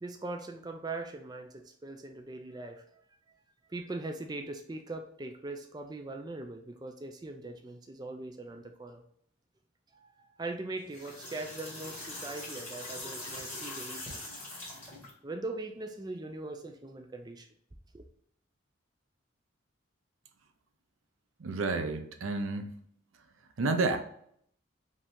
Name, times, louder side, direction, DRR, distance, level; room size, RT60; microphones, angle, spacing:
voice 1, 0.0-2.8 3.7-9.0 9.9-14.4 15.2-17.5 17.9-18.1, right 2 dB, 20° right, 4 dB, 0.4 m, -41 dB
sound 1, 10.8-15.1, left 2 dB, 10° left, 1.7 m, -42 dB
voice 2, 21.4-22.7 23.6-24.0, right 3 dB, 85° right, 6 dB, 0.6 m, -30 dB
5.2 x 2.7 x 3.5 m, 0.65 s
head